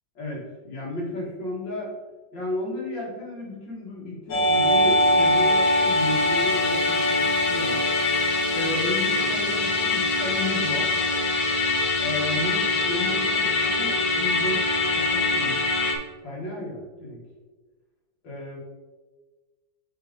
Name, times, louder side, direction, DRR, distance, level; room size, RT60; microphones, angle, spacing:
voice 1, 0.2-1.9 2.3-7.8 8.5-10.9 12.0-14.7 15.0-15.6 16.2-17.2 18.2-18.6, left 2 dB, 70° left, -4 dB, 2.5 m, -33 dB
Musical instrument, 4.3-16.0, left 2 dB, 90° left, 1.7 m, -23 dB
8.2 x 3.7 x 3.8 m, 1.3 s
omnidirectional pair, 2.1 m